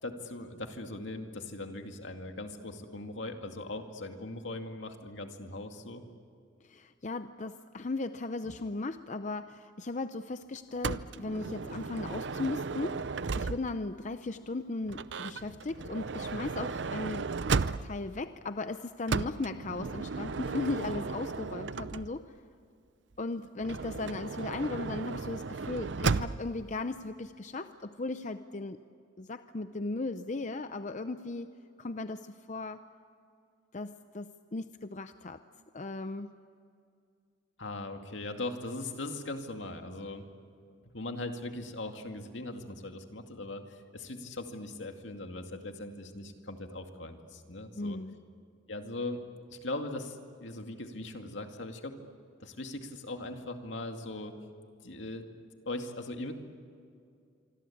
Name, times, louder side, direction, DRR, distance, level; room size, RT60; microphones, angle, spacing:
voice 1, 0.0-6.0 37.6-40.2 40.9-48.0 48.7-49.2 49.5-51.9 52.4-54.3 54.8-55.3 55.7-56.3, left 2 dB, 75° left, 5 dB, 2.3 m, -40 dB
voice 2, 6.6-17.3 17.8-22.3 23.2-28.8 29.2-31.5 31.8-32.8 33.7-35.4 35.7-36.3 47.8-48.2, left 3 dB, 40° left, 10 dB, 0.6 m, -37 dB
Motor vehicle (road) / Sliding door, 10.8-13.9 14.9-18.1 19.1-22.4 23.6-26.6, right 4 dB, 65° right, 0.6 m, -35 dB
26.0 x 25.0 x 8.6 m, 2.4 s
head